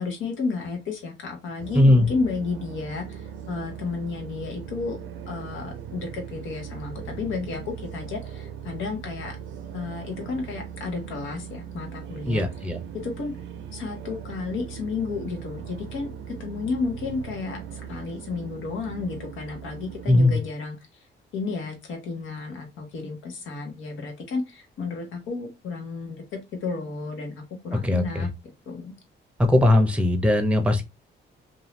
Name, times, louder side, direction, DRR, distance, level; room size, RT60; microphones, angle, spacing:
voice 1, 0.0-5.0 5.3-9.4 9.7-13.3 13.7-20.8 21.3-28.3 28.7-28.9, left 4 dB, 85° left, 1.1 m, -32 dB
sound 1, 1.6-20.4, right 8 dB, 75° right, 0.5 m, -39 dB
voice 2, 1.7-2.1 12.3-12.8 20.1-20.4 27.8-28.3 29.4-30.8, left 1 dB, 5° right, 0.6 m, -19 dB
2.7 x 2.3 x 3.1 m
cardioid pair, 90°, 20 cm